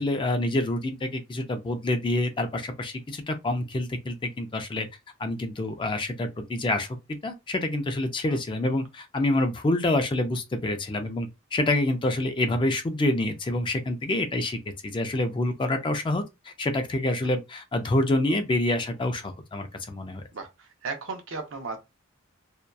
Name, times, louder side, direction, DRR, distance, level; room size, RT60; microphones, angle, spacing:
voice 1, 0.0-4.9 5.2-6.9 7.2-20.2, left 1 dB, 25° left, 0.3 m, -27 dB
voice 2, 20.3-21.8, right 4 dB, 70° right, 0.6 m, -35 dB
2.6 x 2.2 x 2.2 m
head